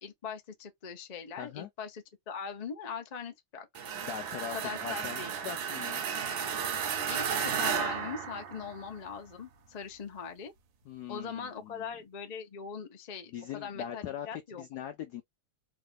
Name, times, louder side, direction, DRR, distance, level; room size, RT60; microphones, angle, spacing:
voice 1, 0.0-3.7 4.5-5.4 7.1-10.5 11.1-14.6, left 6 dB, 65° left, 0.4 m, -41 dB
voice 2, 1.4-1.7 4.0-6.1 10.9-11.9 13.3-15.2, left 9 dB, 80° left, 0.8 m, -41 dB
sound 1, 3.7-9.0, right 7 dB, 70° right, 1.4 m, -33 dB
3.7 x 2.5 x 3.4 m
omnidirectional pair, 2.3 m